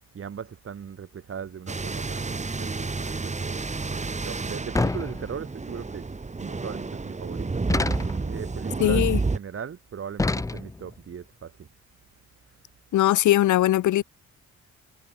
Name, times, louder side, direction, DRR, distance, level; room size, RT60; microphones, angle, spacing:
voice 1, 0.1-3.6 3.9-6.1 6.4-7.9 8.2-11.7, right 7 dB, 45° right, 2.9 m, -38 dB
sound 1, 1.7-9.4, right 3 dB, 25° right, 3.7 m, -30 dB
sound 2, 4.7-5.6 7.7-8.4 10.2-11.0, left 2 dB, 10° left, 0.7 m, -27 dB
voice 2, 8.8-9.2 12.9-14.0, left 14 dB, 75° left, 1.2 m, -20 dB
cardioid pair, 90°, 30 cm